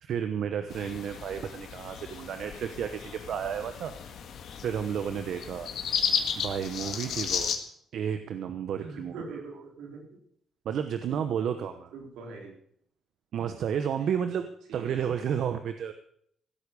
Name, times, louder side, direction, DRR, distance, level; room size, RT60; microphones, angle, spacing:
voice 1, 0.0-3.9 4.6-5.7 6.4-7.5 7.9-9.4 10.6-11.9 13.3-14.5 14.7-15.9, right 8 dB, 70° right, 8 dB, 1.0 m, -32 dB
sound 1, 0.7-7.6, left 7 dB, 70° left, 1.9 m, -34 dB
voice 2, 8.8-10.0 11.9-12.5 14.7-15.0, right 3 dB, 90° right, 1 dB, 4.1 m, -42 dB
16.0 x 8.4 x 6.8 m, 0.69 s
cardioid pair, 90°, 0 cm